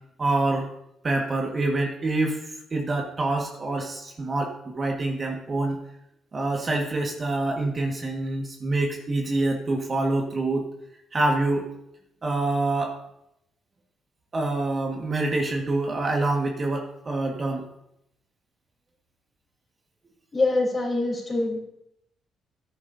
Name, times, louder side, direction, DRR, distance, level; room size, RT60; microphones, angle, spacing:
voice 1, 0.2-0.7 1.0-5.8 6.3-10.7 11.1-11.7 12.2-13.0 14.3-17.7, right 2 dB, 35° right, 1 dB, 1.6 m, -26 dB
voice 2, 20.3-21.6, left 2 dB, 30° left, -1 dB, 3.8 m, -24 dB
13.5 x 9.7 x 2.7 m, 0.79 s
cardioid pair, 90°, 0 cm